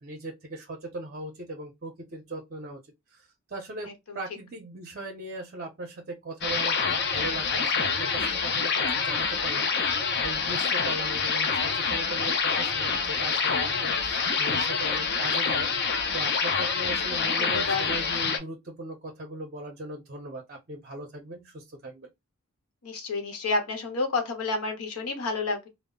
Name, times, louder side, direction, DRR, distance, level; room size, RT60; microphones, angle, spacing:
voice 1, 0.0-2.8 3.1-22.1, right 2 dB, 45° right, 0.6 m, -39 dB
sound 1, 6.4-18.4, left 5 dB, 50° left, 0.5 m, -26 dB
voice 2, 17.1-17.8 22.8-25.7, left 3 dB, 85° left, 0.9 m, -30 dB
2.0 x 2.0 x 3.5 m
head